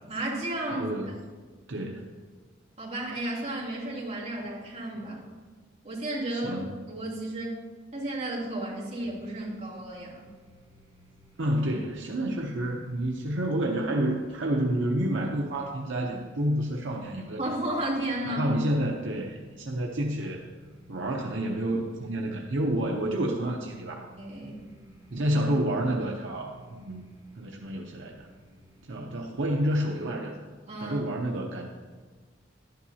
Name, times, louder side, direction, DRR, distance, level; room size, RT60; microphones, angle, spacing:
voice 1, 0.1-0.9 2.8-5.2 5.8-7.5 7.9-10.3 17.4-18.6 24.2-24.6 30.7-31.0, right 1 dB, 35° right, -7 dB, 2.8 m, -33 dB
voice 2, 0.7-1.1 1.7-2.1 6.3-6.7 11.4-17.4 18.2-20.4 20.9-24.1 25.1-27.0 27.4-28.3 28.9-30.4 30.8-31.7, right 1 dB, 70° right, 0 dB, 0.8 m, -29 dB
sound 1, 9.0-28.9, right 1 dB, 20° right, 3.0 m, -57 dB
11.5 x 10.5 x 2.8 m, 1.4 s
head